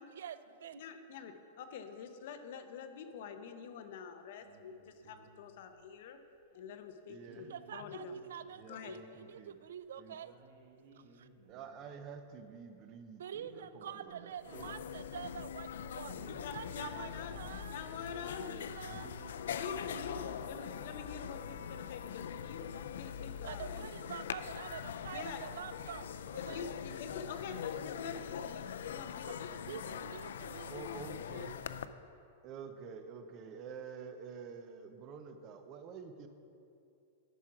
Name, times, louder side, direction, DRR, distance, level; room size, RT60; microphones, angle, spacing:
voice 1, 0.2-0.8 7.5-10.3 10.9-11.3 13.2-16.2 16.5-17.8 18.2-19.4 19.6-19.8 23.4-26.6 29.2-30.7 31.1-31.2, right 9 dB, 80° right, 14 dB, 0.4 m, -47 dB
voice 2, 0.7-6.2 6.5-8.1 8.7-9.0 16.2-17.4 17.7-18.8 19.5-22.7 23.0-23.8 25.1-25.5 26.3-30.0, left 6 dB, 55° left, 7 dB, 0.7 m, -46 dB
sound 1, 4.4-6.0 6.4-6.5 7.1-9.0 9.2-9.4 9.8-9.9 10.2-13.0 13.3-15.4 15.6-15.7 16.0-18.4 18.8-20.8, right 4 dB, 50° right, 1.3 m, -59 dB
voice 3, 7.1-7.5 8.6-9.6 10.0-10.2 11.5-14.7 30.7-31.6 32.4-36.3, right 6 dB, 30° right, 8 dB, 0.6 m, -49 dB
sound 2, 14.1-14.2 14.4-31.9, left 8 dB, 85° left, 0.3 m, -42 dB
11.0 x 6.0 x 4.7 m, 2.7 s
supercardioid pair, 170°, 0 cm